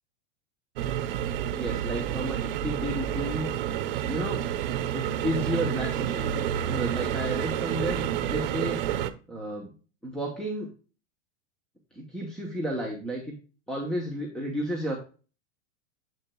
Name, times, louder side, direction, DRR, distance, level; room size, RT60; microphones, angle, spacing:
sound 1, 0.8-9.1, right 10 dB, 55° right, 0.8 m, -29 dB
voice 1, 1.5-3.5 4.1-4.4 4.9-9.0 9.3-9.7 10.0-10.7 11.9-13.3 13.7-15.0, right 1 dB, ahead, -1 dB, 0.9 m, -32 dB
8.0 x 7.1 x 2.2 m, 0.35 s
supercardioid pair, 165°, 34 cm